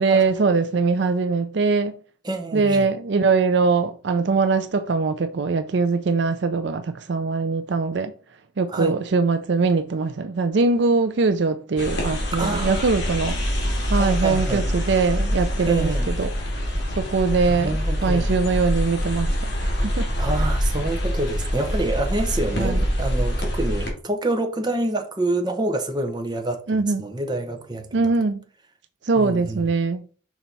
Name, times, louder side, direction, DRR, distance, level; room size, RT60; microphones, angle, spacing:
voice 1, 0.0-2.0 2.5-8.1 8.6-13.4 13.9-16.3 17.0-19.5 19.9-20.1 22.5-22.8 26.7-27.0 27.9-28.4 29.0-30.0, right 4 dB, 60° right, 0.5 m, -22 dB
voice 2, 2.2-2.9 8.7-9.0 12.4-12.9 13.9-14.7 15.7-16.1 17.5-18.4 20.2-28.1 29.2-29.7, right 2 dB, 20° right, 0.9 m, -27 dB
sound 1, 11.8-23.9, equal, 60° left, 2.4 m, -25 dB
5.9 x 4.3 x 4.0 m
head